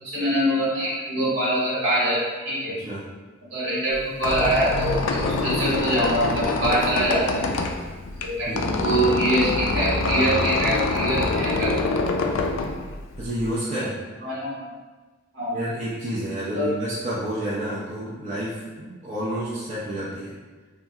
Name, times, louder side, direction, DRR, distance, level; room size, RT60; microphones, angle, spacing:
voice 1, 0.0-2.8 3.5-7.5 8.2-12.2 13.8-13.9 14.2-14.7 15.3-15.6 16.5-16.7, right 1 dB, 70° right, -8 dB, 1.3 m, -24 dB
Squeak, 3.9-13.5, left 3 dB, 70° left, 0.3 m, -26 dB
voice 2, 8.5-9.0 13.2-13.9 15.5-20.3, right 1 dB, 35° right, -9 dB, 0.5 m, -30 dB
3.1 x 2.3 x 2.7 m, 1.3 s
head